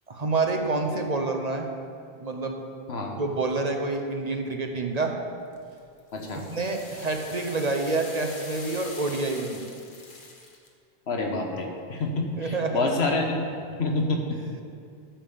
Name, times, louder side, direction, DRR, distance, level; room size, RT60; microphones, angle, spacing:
voice 1, 0.1-1.7 2.2-2.6 3.2-5.1 6.5-9.7 12.4-12.8, right 3 dB, 45° right, 3 dB, 0.8 m, -28 dB
voice 2, 2.9-3.2 6.1-6.4 11.1-13.4 13.8-14.4, left 3 dB, 85° left, 2 dB, 1.4 m, -27 dB
sound 1, 5.5-10.7, left 3 dB, 55° left, 1.2 m, -44 dB
10.0 x 5.4 x 7.0 m, 2.3 s
omnidirectional pair, 1.1 m